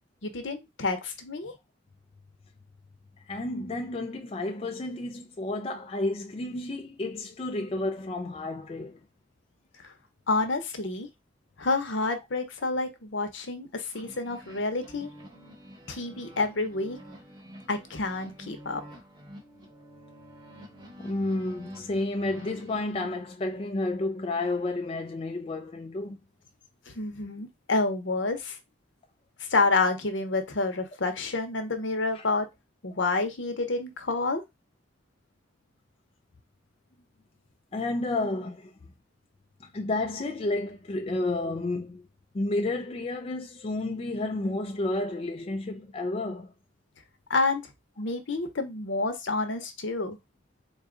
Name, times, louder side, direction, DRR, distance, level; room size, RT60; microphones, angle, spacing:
voice 1, 0.2-1.5 9.8-9.9 10.3-11.1 11.6-15.1 15.9-17.0 17.7-18.8 26.9-28.6 29.5-32.5 32.8-34.4 47.3-47.6 48.0-50.2, left 3 dB, 70° left, 0.8 m, -28 dB
voice 2, 3.2-9.0 21.0-26.2 32.1-32.2 37.7-38.7 39.6-42.0 42.3-46.5, left 2 dB, 30° left, 0.4 m, -31 dB
sound 1, 13.9-22.9, equal, 20° right, 0.9 m, -48 dB
3.9 x 2.3 x 3.8 m
head